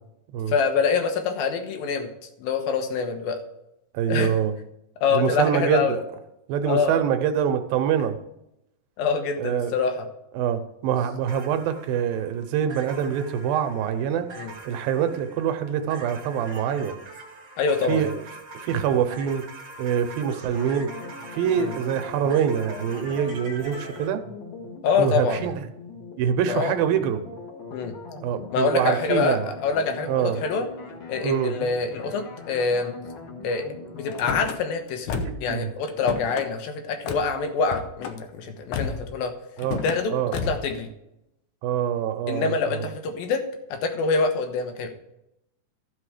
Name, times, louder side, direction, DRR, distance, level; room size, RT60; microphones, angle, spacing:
voice 1, 0.5-2.1 2.4-3.4 4.1-4.3 5.0-6.0 6.6-7.0 9.0-10.1 14.4-14.5 17.6-18.0 21.6-21.7 24.8-25.5 26.5-26.7 27.7-27.9 28.5-30.7 31.1-32.9 33.4-39.3 39.8-40.1 40.5-40.9 42.3-43.4 43.7-44.9, left 5 dB, 90° left, 6 dB, 3.0 m, -25 dB
voice 2, 3.9-4.5 5.1-6.0 6.5-8.2 9.4-9.7 10.3-14.3 14.7-17.0 17.9-18.1 18.5-19.4 19.8-20.9 21.3-24.2 25.0-25.6 26.2-27.2 28.2-29.5 30.1-30.4 31.2-31.5 35.1-35.7 39.6-39.8 40.1-40.5 41.6-42.9, right 8 dB, 90° right, 9 dB, 2.6 m, -25 dB
sound 1, 11.3-24.1, right 2 dB, 40° right, 1.5 m, -43 dB
sound 2, 20.5-34.5, left 3 dB, 40° left, 2.2 m, -41 dB
Car / Slam, 34.1-34.6 35.1-35.5 35.8-36.5 37.1-37.3 37.7-38.2 38.7-39.1 39.6-40.0 40.3-40.7, left 6 dB, 75° left, 1.9 m, -31 dB
14.5 x 5.9 x 4.9 m, 0.85 s
omnidirectional pair, 4.0 m